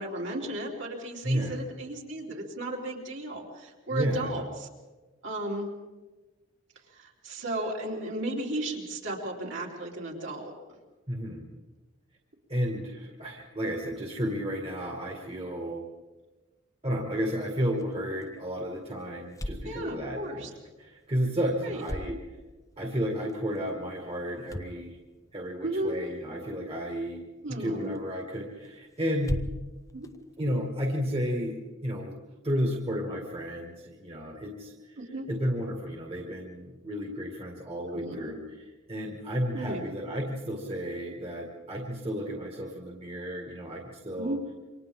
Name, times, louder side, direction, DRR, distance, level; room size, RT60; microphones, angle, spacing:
voice 1, 0.0-4.7 5.2-5.7 6.9-10.5 19.6-20.5 21.6-21.8 25.6-26.0 27.4-28.0 29.9-30.1 35.0-35.3 37.9-38.3 39.5-39.8 44.2-44.4, right 1 dB, 60° right, -2 dB, 4.0 m, -34 dB
voice 2, 1.2-1.6 3.9-4.4 11.1-11.5 12.5-15.8 16.8-20.5 20.8-22.2 22.8-25.0 25.3-27.2 27.6-29.4 30.4-31.6 31.8-32.1 32.4-35.0 35.3-44.4, equal, 30° right, 0 dB, 2.2 m, -32 dB
sound 1, 17.6-31.2, equal, 15° left, 0.8 m, -43 dB
28.0 x 25.0 x 3.8 m, 1.2 s
head